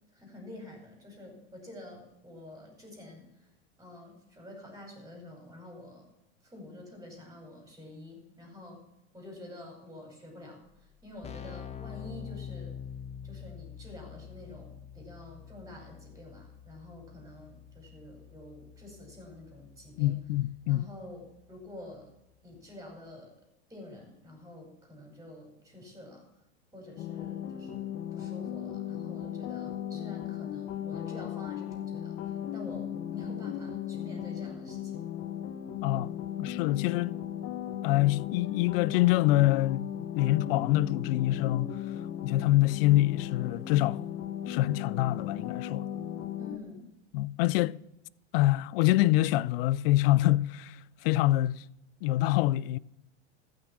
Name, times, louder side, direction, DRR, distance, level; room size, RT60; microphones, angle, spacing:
voice 1, 0.1-3.5 3.8-6.1 6.4-8.8 9.1-12.8 13.2-20.2 20.7-21.2 21.5-22.1 22.4-23.3 23.7-26.2 26.7-32.2 32.5-35.1 46.4-46.9, left 1 dB, 10° right, 5.6 m, -48 dB
Keyboard (musical), 10.6-10.7 10.9-21.6, left 8 dB, 20° left, 0.8 m, -46 dB
voice 2, 20.0-20.9 35.8-36.1 36.4-37.2 37.8-41.8 42.2-44.0 44.5-45.9 47.1-47.8 48.3-51.6 52.0-52.8, left 16 dB, 55° left, 0.5 m, -26 dB
sound 1, 27.0-46.6, left 10 dB, 40° left, 1.1 m, -37 dB
14.5 x 6.5 x 7.3 m
hypercardioid pair, 105°, 34 cm